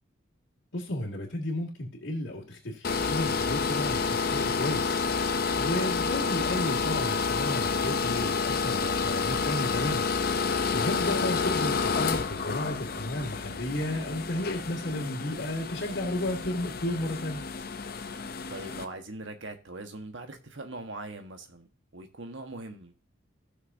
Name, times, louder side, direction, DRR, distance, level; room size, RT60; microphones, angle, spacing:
voice 1, 0.7-10.1 10.7-17.4, left 1 dB, 75° left, 2.1 m, -33 dB
sound 1, 2.8-18.8, left 5 dB, 50° left, 0.6 m, -29 dB
voice 2, 11.0-11.6 18.5-21.7 21.9-23.0, right 2 dB, 70° right, 1.4 m, -41 dB
15.0 x 6.6 x 2.7 m
head